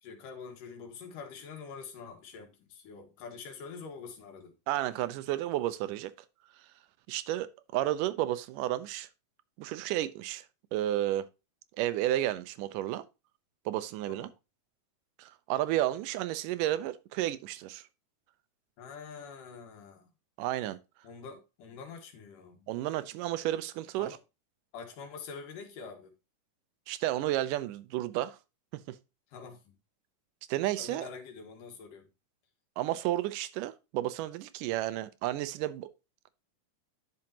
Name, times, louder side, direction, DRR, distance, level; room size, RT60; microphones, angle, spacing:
voice 1, 0.0-4.6 14.1-14.3 18.8-20.1 21.0-22.7 24.0-24.2 24.7-26.1 29.3-29.8 30.8-32.1, left 5 dB, 90° left, 3.1 m, -46 dB
voice 2, 4.7-6.1 7.1-9.1 9.6-10.5 10.7-11.3 11.8-13.0 13.7-14.3 15.2-17.8 20.4-20.8 22.7-24.2 26.9-28.4 28.7-29.0 30.5-31.1 32.8-35.9, right 14 dB, 85° right, 2.3 m, -32 dB
10.5 x 6.3 x 2.9 m
omnidirectional pair, 3.7 m